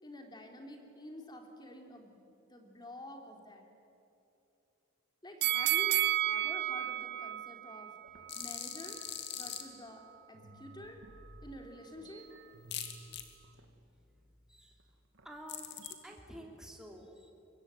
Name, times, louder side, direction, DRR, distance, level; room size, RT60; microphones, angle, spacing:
voice 1, 0.0-2.2 2.5-3.6 5.2-7.9 8.3-9.0 9.3-10.0 10.3-11.0 11.4-12.3, left 1 dB, 20° left, 3 dB, 3.3 m, -49 dB
sound 1, 5.4-8.5 8.9-9.0, right 14 dB, 55° right, 0.6 m, -32 dB
sound 2, 8.0-10.0 10.3-16.1, right 2 dB, 90° right, 2.4 m, -57 dB
sound 3, 8.3-9.6 12.7-13.2 15.5-15.9, left 9 dB, 60° left, 2.4 m, -41 dB
voice 2, 13.5-15.0 15.2-15.8 16.0-17.3, equal, 5° right, 1 dB, 3.2 m, -52 dB
24.5 x 22.5 x 9.8 m, 2.8 s
head